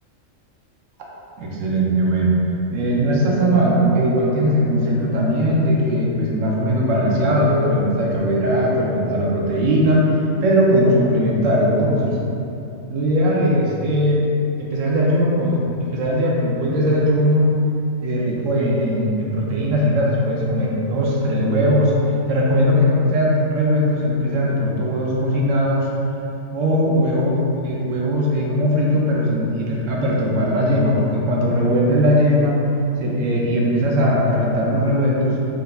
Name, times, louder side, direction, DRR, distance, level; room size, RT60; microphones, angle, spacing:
voice 1, 1.4-2.3 2.7-10.0 10.4-12.2 12.9-14.2 14.6-17.5 18.0-21.9 22.3-25.9 26.5-27.3 27.6-32.6 33.0-35.4, equal, 70° right, -3 dB, 0.9 m, -19 dB
3.5 x 3.1 x 2.3 m, 2.7 s
omnidirectional pair, 1.4 m